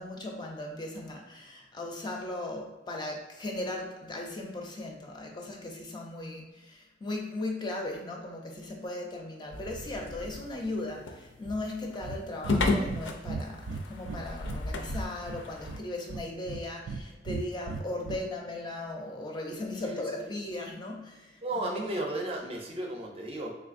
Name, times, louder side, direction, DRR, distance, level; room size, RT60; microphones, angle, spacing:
voice 1, 0.0-21.7, left 2 dB, 25° left, 0 dB, 0.4 m, -37 dB
sound 1, 9.5-15.8, left 2 dB, 85° left, 0.4 m, -34 dB
Breathing, 12.0-12.2 12.4-12.6 12.9-13.0 13.3-14.6 14.9-15.8 16.1-17.0 17.3-18.2, right 4 dB, 90° right, 0.3 m, -37 dB
voice 2, 19.8-20.4 21.4-23.5, right 1 dB, 30° right, 0 dB, 0.5 m, -34 dB
3.4 x 3.2 x 2.4 m, 1.1 s
head